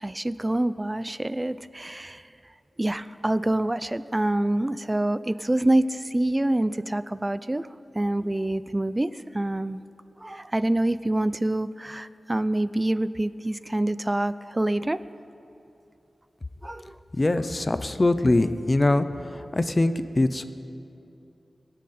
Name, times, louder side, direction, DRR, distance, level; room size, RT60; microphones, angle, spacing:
voice 1, 0.0-2.3 2.8-7.7 7.9-9.8 10.2-15.0 16.6-17.0, right 1 dB, 20° right, 15 dB, 0.4 m, -26 dB
voice 2, 17.1-19.1 19.3-20.5, left 2 dB, 30° left, 11 dB, 0.6 m, -23 dB
23.0 x 9.9 x 4.3 m, 2.9 s
wide cardioid pair, 105°, 0 cm